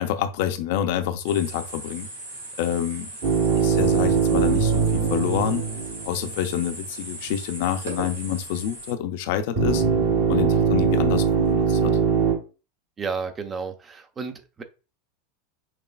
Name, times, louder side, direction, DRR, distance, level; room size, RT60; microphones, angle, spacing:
voice 1, 0.0-2.1 2.6-3.1 3.6-5.7 6.1-9.8 10.3-12.0, left 10 dB, 55° left, 9 dB, 0.6 m, -27 dB
sound 1, 1.2-8.9, right 2 dB, 80° right, 2.0 m, -38 dB
sound 2, 3.2-6.6 9.6-12.3, right 6 dB, 60° right, 2.1 m, -21 dB
voice 2, 13.0-14.6, right 5 dB, 25° right, 7 dB, 0.7 m, -32 dB
5.9 x 3.1 x 2.3 m, 0.31 s
figure-of-eight pair, 85°, 0 cm